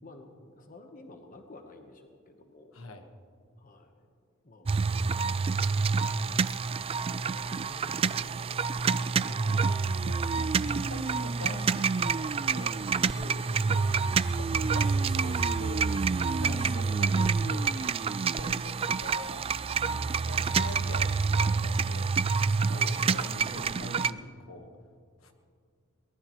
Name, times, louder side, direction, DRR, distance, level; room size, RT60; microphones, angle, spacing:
voice 1, 0.0-2.8 3.6-4.1 4.4-9.5 13.1-13.6 16.4-16.7 18.3-18.6 22.7-23.1, left 2 dB, 40° left, 4 dB, 1.1 m, -51 dB
voice 2, 2.7-3.1 9.2-12.8 13.7-13.8 14.1-15.9 16.3-17.7 18.3-22.1 22.7-24.8 25.2-25.3, left 2 dB, 70° left, 5 dB, 1.4 m, -45 dB
sound 1, 4.7-24.1, right 5 dB, 25° right, 0.3 m, -28 dB
23.0 x 19.5 x 3.1 m, 2.2 s
head